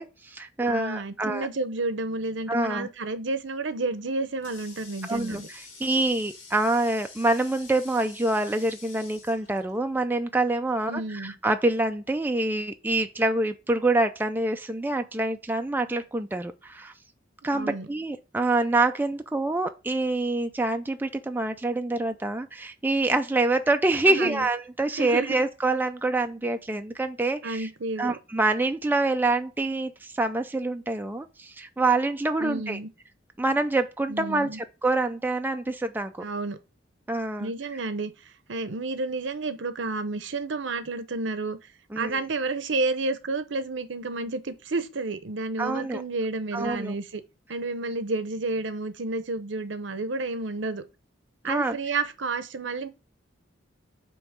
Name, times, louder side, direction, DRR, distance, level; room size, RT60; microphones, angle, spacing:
voice 1, 0.0-1.5 2.5-2.9 5.1-16.9 17.4-27.7 28.0-32.8 33.4-34.5 34.8-36.2 37.1-37.5 41.9-42.2 45.6-46.0 46.5-46.9 51.5-51.8, right 2 dB, 10° right, 0.4 m, -26 dB
voice 2, 0.6-5.5 10.9-11.3 17.5-17.9 24.1-24.5 25.0-25.4 27.4-28.2 32.4-32.9 34.1-34.6 36.2-36.6 37.4-41.6 41.9-47.2 47.5-50.8 51.4-52.9, right 3 dB, 70° right, 0.8 m, -31 dB
Water tap faucet, 3.8-10.3, left 4 dB, 90° left, 2.0 m, -48 dB
7.9 x 3.1 x 5.0 m
head